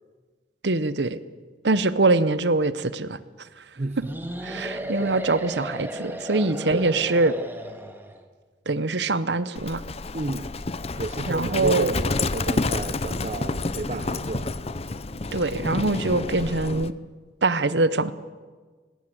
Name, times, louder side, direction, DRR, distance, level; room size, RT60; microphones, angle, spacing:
voice 1, 0.6-1.2 1.6-3.2 4.0-4.1 4.4-7.3 8.7-9.8 11.3-11.9 15.3-16.9 17.4-18.1, right 3 dB, 70° right, 15 dB, 1.0 m, -23 dB
sound 1, 4.0-8.2, equal, 10° right, 1.8 m, -35 dB
Livestock farm animals working animals, 9.6-16.9, left 3 dB, 35° left, 0.7 m, -29 dB
voice 2, 10.1-10.5 11.0-14.5, right 2 dB, 40° right, 12 dB, 0.6 m, -31 dB
19.5 x 17.5 x 8.0 m, 1.4 s
head